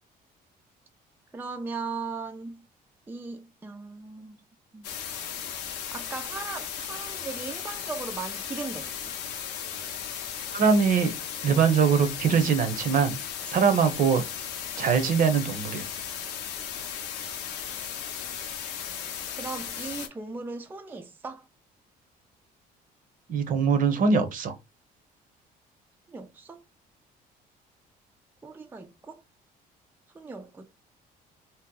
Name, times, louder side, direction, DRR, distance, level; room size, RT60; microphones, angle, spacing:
voice 1, 1.3-2.7 3.1-4.4 4.7-4.9 5.9-9.2 19.4-21.5 26.1-26.6 28.4-29.2 30.1-30.7, right 4 dB, 10° right, 0.4 m, -38 dB
sound 1, 4.8-20.1, left 8 dB, 90° left, 0.7 m, -36 dB
voice 2, 10.5-11.1 11.4-13.2 13.5-14.2 14.8-15.8 23.3-24.5, right 6 dB, 55° right, 0.7 m, -22 dB
2.8 x 2.0 x 3.6 m
cardioid pair, 110°, 17 cm